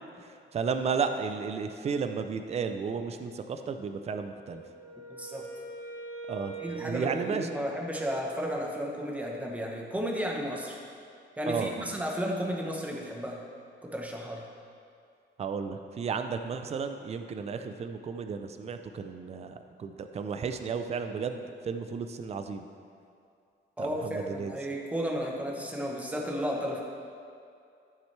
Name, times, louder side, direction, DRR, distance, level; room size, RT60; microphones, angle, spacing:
voice 1, 0.5-4.6 6.3-6.5 6.8-7.5 11.5-11.9 15.4-22.6 23.8-24.6, right 5 dB, 30° right, 7 dB, 0.4 m, -33 dB
Wind instrument woodwind instrument, 4.5-8.4, right 4 dB, 20° left, 2.3 m, -43 dB
voice 2, 5.1-5.5 6.6-10.8 11.4-13.4 13.8-14.5 23.8-26.8, equal, 5° right, 0 dB, 0.9 m, -33 dB
13.0 x 7.4 x 3.3 m, 2.4 s
wide cardioid pair, 175°, 20 cm